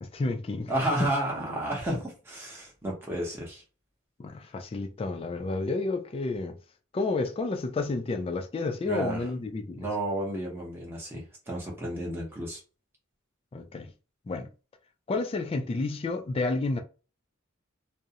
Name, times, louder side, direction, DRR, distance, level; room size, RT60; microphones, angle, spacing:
voice 1, 0.0-0.7 4.2-6.6 6.9-9.9 13.5-13.9 14.3-14.5 15.1-16.8, left 3 dB, 30° left, 0.3 m, -30 dB
voice 2, 0.7-3.6 8.9-9.3 9.8-12.6, right 1 dB, 10° right, 0.7 m, -31 dB
2.4 x 2.0 x 2.7 m
head